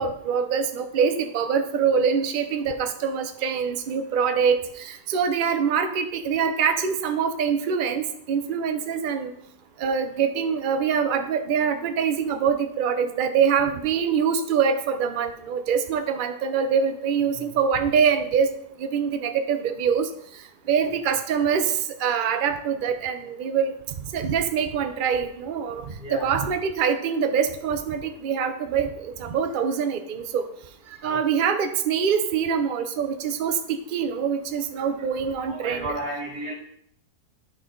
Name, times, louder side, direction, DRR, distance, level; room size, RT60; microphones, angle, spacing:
voice 1, 0.0-9.3 9.8-18.5 18.8-20.1 20.7-23.7 24.1-30.5 31.0-35.9, right 7 dB, 55° right, 8 dB, 0.6 m, -24 dB
voice 2, 25.9-26.3 31.0-31.2 35.5-36.5, right 1 dB, 75° right, -3 dB, 2.5 m, -34 dB
12.0 x 4.2 x 3.8 m, 0.72 s
omnidirectional pair, 1.7 m